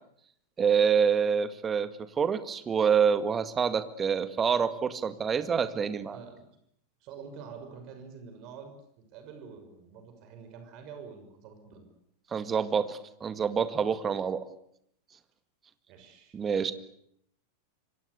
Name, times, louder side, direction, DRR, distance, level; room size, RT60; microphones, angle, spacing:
voice 1, 0.6-6.2 12.3-14.4 16.3-16.7, right 6 dB, 20° right, 12 dB, 2.0 m, -27 dB
voice 2, 6.1-6.5 7.0-8.8 9.1-11.9 15.9-16.3, right 6 dB, 40° right, 7 dB, 6.3 m, -46 dB
27.0 x 24.5 x 8.3 m, 0.71 s
figure-of-eight pair, 90°, 0 cm